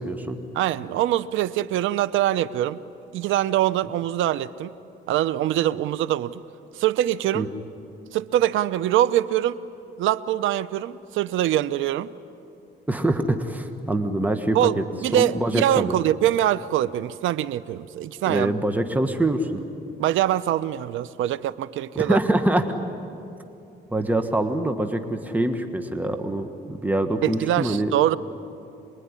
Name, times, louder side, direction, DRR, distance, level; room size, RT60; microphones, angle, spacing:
voice 1, 0.0-0.4 7.3-7.5 12.9-14.8 15.1-16.0 18.3-19.6 21.9-22.6 23.3-23.4 23.9-27.9, right 1 dB, 10° right, 6 dB, 1.6 m, -24 dB
voice 2, 0.6-2.8 3.1-4.7 5.1-6.4 6.8-7.5 8.1-9.6 10.0-12.1 14.5-18.5 20.0-22.2 27.2-28.2, right 12 dB, 85° right, 17 dB, 0.7 m, -23 dB
26.5 x 21.5 x 9.8 m, 2.7 s
cardioid pair, 90°, 20 cm